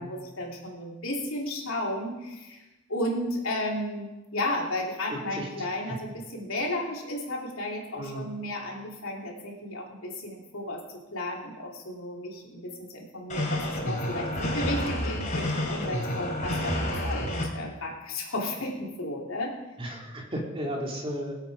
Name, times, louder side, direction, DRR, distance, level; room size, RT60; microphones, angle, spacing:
voice 1, 0.0-2.6 2.9-10.8 11.1-16.8 17.0-19.5, left 1 dB, 85° left, -1 dB, 3.2 m, -33 dB
voice 2, 7.9-8.3 17.2-17.4 19.8-21.4, equal, 25° right, -1 dB, 2.5 m, -34 dB
sound 1, 13.3-17.4, left 1 dB, 35° left, 2.8 m, -29 dB
21.0 x 8.2 x 5.0 m, 1.1 s
head